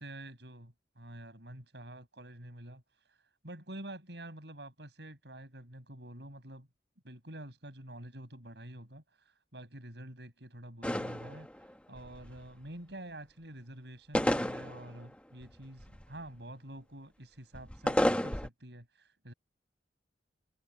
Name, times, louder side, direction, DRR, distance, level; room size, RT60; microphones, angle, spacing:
voice 1, 0.0-2.8 3.1-3.2 3.4-6.7 7.0-19.3, right 1 dB, 70° right, 7.2 m, -48 dB
sound 1, 10.8-11.7 12.0-12.4 14.1-15.1 15.4-16.0 17.5-18.5, equal, 5° left, 1.1 m, -31 dB
head